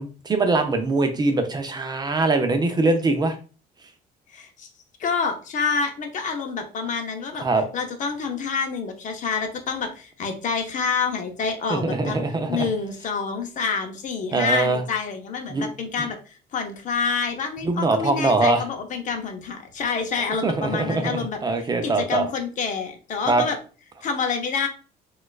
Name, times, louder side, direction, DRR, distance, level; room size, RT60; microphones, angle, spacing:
voice 1, 0.0-3.4 7.4-7.6 11.7-12.7 14.3-14.8 15.5-15.7 17.6-18.6 20.4-22.3 23.3-23.4, right 3 dB, 25° right, 6 dB, 0.5 m, -22 dB
voice 2, 4.3-4.7 5.0-7.5 7.7-12.2 12.5-21.4 21.8-23.6 24.0-24.7, left 5 dB, 50° left, 5 dB, 0.6 m, -27 dB
4.1 x 2.4 x 2.3 m, 0.36 s
cardioid pair, 110°, 17 cm